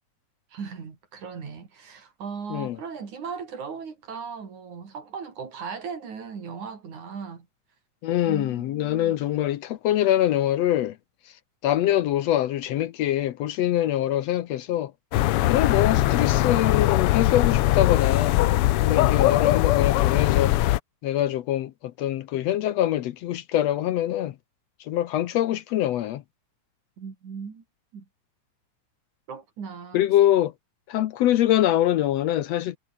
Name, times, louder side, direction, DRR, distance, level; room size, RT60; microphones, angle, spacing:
voice 1, 0.5-7.5 8.3-9.2 27.0-27.6 27.9-28.1 29.3-30.0, right 6 dB, 75° right, 5.2 m, -37 dB
voice 2, 8.0-11.0 11.6-14.9 15.5-18.4 18.8-20.5 21.0-24.3 24.9-26.2 29.9-30.5 30.9-32.8, left 12 dB, 70° left, 1.8 m, -24 dB
sound 1, 15.1-20.8, left 16 dB, 85° left, 1.2 m, -21 dB
omnidirectional pair, 3.4 m